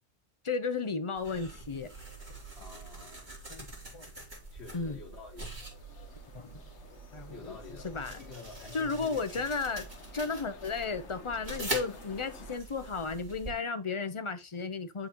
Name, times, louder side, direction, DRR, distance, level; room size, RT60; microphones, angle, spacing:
voice 1, 0.4-1.9 3.5-4.1 4.7-5.0 6.3-6.6 7.1-7.6 7.8-8.2 8.7-9.8 10.1-15.1, left 4 dB, 30° left, 0.7 m, -34 dB
sound 1, 1.1-13.5, right 2 dB, 40° right, 3.3 m, -44 dB
voice 2, 2.5-3.3 4.5-5.5 7.3-7.9 8.2-9.4, left 4 dB, 70° left, 1.5 m, -48 dB
sound 2, 5.6-12.6, left 4 dB, 85° left, 1.2 m, -52 dB
11.5 x 3.9 x 3.0 m
omnidirectional pair, 1.1 m